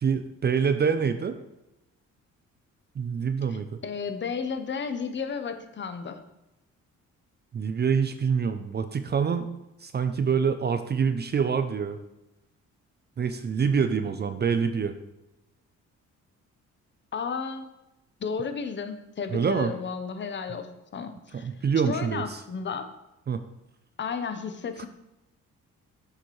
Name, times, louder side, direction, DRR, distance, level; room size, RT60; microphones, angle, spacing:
voice 1, 0.0-1.4 3.0-3.7 7.5-9.5 9.8-12.0 13.2-14.9 19.3-19.7 21.3-22.4 23.3-23.4 24.8-24.9, right 6 dB, 35° right, 10 dB, 0.5 m, -26 dB
voice 2, 3.5-6.2 17.1-17.7 18.2-21.5 21.9-22.9 24.0-24.9, left 5 dB, 40° left, 8 dB, 0.9 m, -33 dB
7.4 x 6.7 x 3.2 m, 0.93 s
cardioid pair, 90°, 30 cm